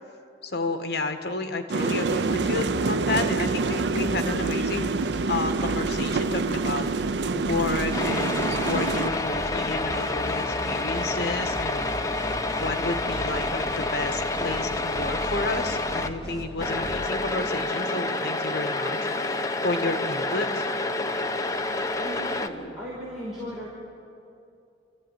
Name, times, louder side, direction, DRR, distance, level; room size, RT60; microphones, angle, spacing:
voice 1, 0.4-4.9 5.3-6.9 7.3-11.9 12.6-19.1 19.6-20.6, left 3 dB, 65° left, 6 dB, 1.7 m, -31 dB
sound 1, 1.7-9.1, right 4 dB, 70° right, 0.6 m, -26 dB
sound 2, 2.0-17.0, equal, 20° right, 2.6 m, -37 dB
sound 3, 7.9-16.1 16.6-22.5, left 2 dB, 20° left, 1.0 m, -28 dB
voice 2, 22.0-23.7, equal, 5° right, -8 dB, 5.2 m, -37 dB
28.0 x 14.5 x 9.4 m, 2.6 s
head